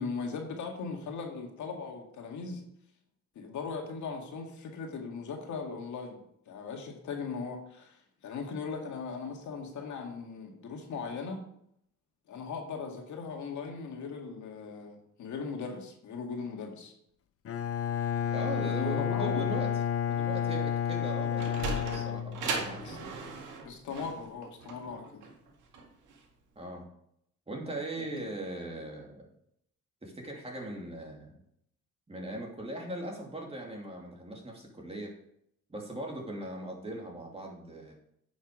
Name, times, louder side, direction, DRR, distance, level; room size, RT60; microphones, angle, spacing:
voice 1, 0.0-2.6 3.4-11.4 12.3-16.9 18.6-19.5 22.8-23.0 23.6-25.2 28.1-28.2, left 5 dB, 70° left, 2 dB, 2.0 m, -39 dB
Bowed string instrument, 17.5-22.9, left 9 dB, 50° left, 0.8 m, -31 dB
voice 2, 18.3-19.7 20.1-23.0 26.6-26.9 27.5-29.3 30.0-31.4 32.1-35.1 35.7-38.0, right 1 dB, 20° right, 0 dB, 2.6 m, -39 dB
Sliding door, 21.1-26.3, right 4 dB, 85° right, 2.0 m, -37 dB
9.5 x 6.3 x 4.9 m, 0.72 s
cardioid pair, 90°, 30 cm